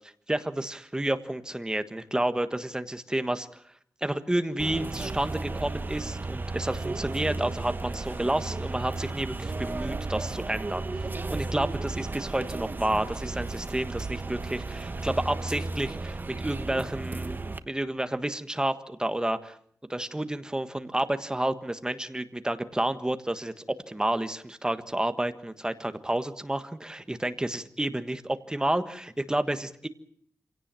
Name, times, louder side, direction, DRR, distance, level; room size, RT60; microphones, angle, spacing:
voice 1, 0.3-3.5 4.0-10.8 11.3-19.6 19.9-29.9, right 1 dB, 15° right, 10 dB, 1.5 m, -30 dB
sound 1, 4.6-17.6, right 3 dB, 35° right, 1.3 m, -34 dB
27.0 x 17.5 x 7.6 m, 0.63 s
wide cardioid pair, 120°, 6 cm